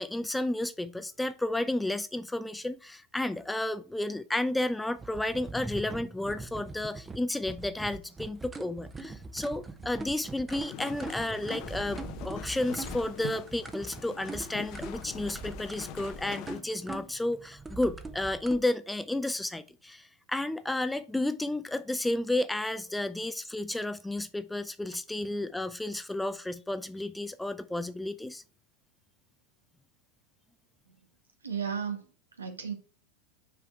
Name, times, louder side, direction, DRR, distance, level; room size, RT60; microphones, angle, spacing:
voice 1, 0.0-28.4, left 1 dB, 5° left, 0.5 m, -32 dB
sound 1, 5.0-18.6, right 3 dB, 15° right, 1.0 m, -42 dB
sound 2, 10.5-16.6, left 9 dB, 50° left, 1.0 m, -43 dB
voice 2, 31.4-32.7, right 7 dB, 85° right, 1.4 m, -35 dB
6.0 x 4.9 x 4.7 m
figure-of-eight pair, 90°, 0 cm